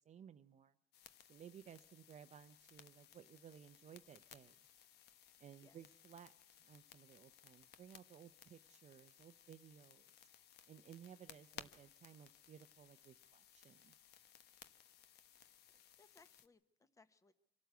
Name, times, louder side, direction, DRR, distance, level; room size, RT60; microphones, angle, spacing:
voice 1, 0.0-0.7 1.3-4.5 5.4-6.3 6.6-10.3 10.7-14.0, right 9 dB, 40° right, 9 dB, 0.7 m, -59 dB
sound 1, 0.9-16.5, left 10 dB, 75° left, 1.1 m, -62 dB
voice 2, 16.0-17.3, left 4 dB, 20° left, 10 dB, 1.2 m, -68 dB
25.5 x 12.5 x 8.1 m, 0.83 s
cardioid pair, 110°, 17 cm